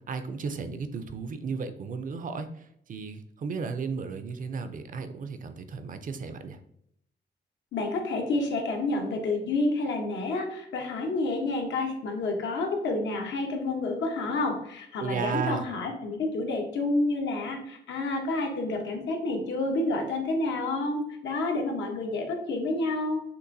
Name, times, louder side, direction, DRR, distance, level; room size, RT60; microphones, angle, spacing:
voice 1, 0.0-6.6 15.0-15.6, right 5 dB, 45° right, 8 dB, 0.5 m, -34 dB
voice 2, 7.7-23.2, left 2 dB, 80° left, 2 dB, 0.9 m, -29 dB
6.6 x 2.6 x 2.6 m, 0.74 s
wide cardioid pair, 125°, 19 cm